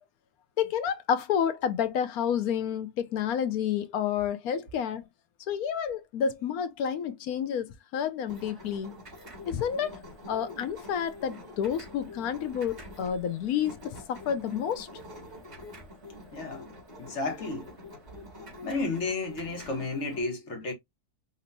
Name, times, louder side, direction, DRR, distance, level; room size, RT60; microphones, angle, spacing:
voice 1, 0.6-5.0 5.5-8.9 9.5-10.0 10.3-13.8 14.1-14.9, left 8 dB, 75° left, 1.1 m, -29 dB
sound 1, 8.3-20.2, left 1 dB, 45° right, 2.9 m, -46 dB
voice 2, 16.3-16.7 17.0-17.7 18.6-20.7, left 3 dB, 50° left, 1.4 m, -32 dB
5.2 x 2.8 x 2.6 m
omnidirectional pair, 1.6 m